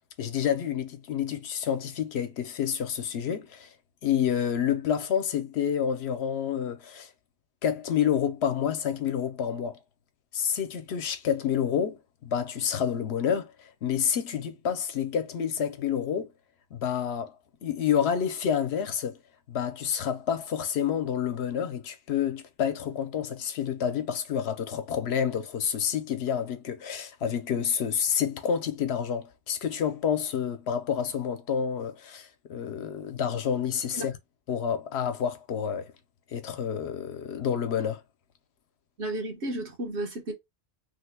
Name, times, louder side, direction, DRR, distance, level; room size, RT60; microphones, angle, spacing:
voice 1, 0.2-3.7 4.0-7.1 7.6-9.8 10.3-16.3 16.7-17.3 17.6-19.2 19.5-34.2 34.5-35.9 36.3-38.0, left 8 dB, 75° left, 0.9 m, -29 dB
voice 2, 39.0-40.3, right 1 dB, 80° right, 1.5 m, -33 dB
3.4 x 2.2 x 3.3 m
omnidirectional pair, 1.1 m